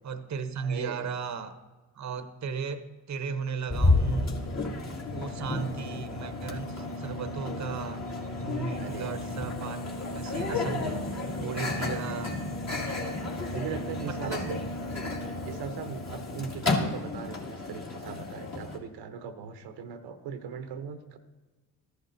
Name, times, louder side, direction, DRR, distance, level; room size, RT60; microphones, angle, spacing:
voice 1, 0.0-1.6 1.9-4.4 5.1-8.1 8.4-11.1 11.4-12.5 14.0-14.5, right 5 dB, 45° right, 10 dB, 0.8 m, -36 dB
voice 2, 0.6-1.1 5.4-6.0 8.7-9.4 11.8-12.0 13.5-14.6 15.4-21.2, right 6 dB, 75° right, 8 dB, 0.9 m, -40 dB
Microwave oven, 3.7-18.8, left 2 dB, 40° left, 2.2 m, -31 dB
14.0 x 10.0 x 2.7 m, 1.2 s
supercardioid pair, 60°, 41 cm